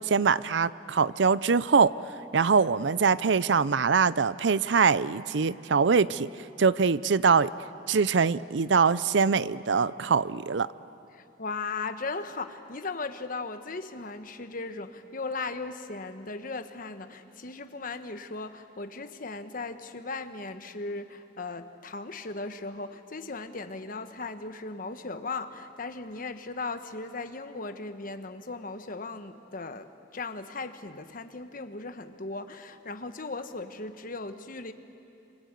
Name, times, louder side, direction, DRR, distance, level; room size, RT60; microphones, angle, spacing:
voice 1, 0.1-1.9 2.3-6.3 6.6-7.5 7.9-10.7, right 5 dB, 70° right, 18 dB, 0.6 m, -23 dB
voice 2, 11.1-34.7, left 3 dB, 50° left, 9 dB, 1.2 m, -37 dB
26.5 x 26.5 x 8.2 m, 2.8 s
head